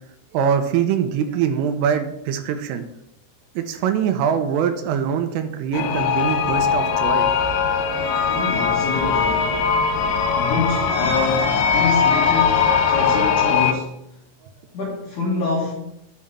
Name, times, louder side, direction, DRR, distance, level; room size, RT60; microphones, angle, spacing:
voice 1, 0.3-2.8 3.6-7.3, right 8 dB, 85° right, 7 dB, 3.5 m, -23 dB
sound 1, 5.7-13.7, left 6 dB, 80° left, 3.4 m, -20 dB
voice 2, 8.3-9.5 10.4-14.0 14.7-15.7, left 4 dB, 60° left, -4 dB, 2.1 m, -26 dB
9.1 x 4.2 x 7.4 m, 0.79 s
omnidirectional pair, 5.8 m